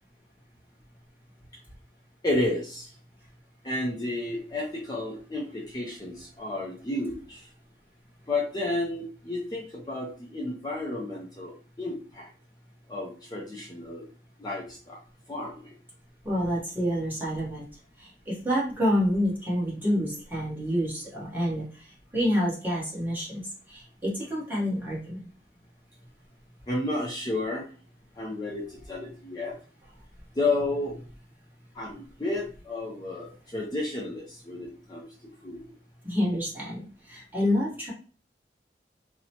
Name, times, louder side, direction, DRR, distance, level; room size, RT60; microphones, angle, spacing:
voice 1, 2.2-2.9 3.6-7.5 8.3-11.5 11.8-12.3 12.9-14.1 14.4-15.0 15.3-15.7 26.7-27.7 28.2-29.6 30.3-31.0 31.7-35.0 35.4-35.6, left 2 dB, 25° left, -3 dB, 0.5 m, -31 dB
voice 2, 16.2-17.6 18.0-23.4 23.7-25.3 36.0-37.9, equal, 10° right, -6 dB, 1.1 m, -28 dB
2.8 x 2.1 x 2.8 m, 0.39 s
head